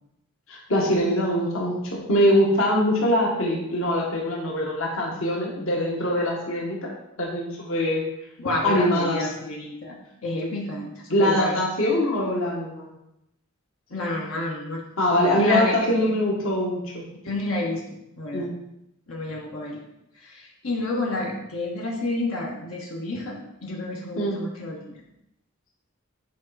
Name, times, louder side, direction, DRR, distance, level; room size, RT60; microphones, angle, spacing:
voice 1, 0.5-6.9 7.2-8.0 8.6-9.3 11.1-12.9 15.0-17.0 18.3-18.5 24.1-24.4, left 1 dB, 70° left, -2 dB, 1.5 m, -23 dB
voice 2, 8.4-11.6 13.9-14.8 15.4-16.2 17.2-17.8 18.2-18.5 19.1-19.8 20.2-23.4 23.6-24.9, left 2 dB, 85° left, -2 dB, 1.5 m, -30 dB
8.5 x 4.3 x 4.2 m, 0.85 s
head